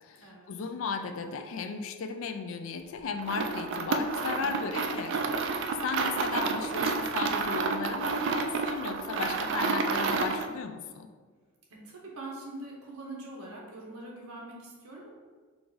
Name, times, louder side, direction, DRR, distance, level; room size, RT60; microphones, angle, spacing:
voice 1, 0.0-5.5 5.8-11.1, left 5 dB, 60° left, 7 dB, 0.3 m, -35 dB
sound 1, 3.2-10.5, right 4 dB, 55° right, 0.3 m, -30 dB
voice 2, 4.3-4.9 11.7-15.1, right 2 dB, 80° right, -2 dB, 1.0 m, -44 dB
4.5 x 2.5 x 3.8 m, 1.5 s
head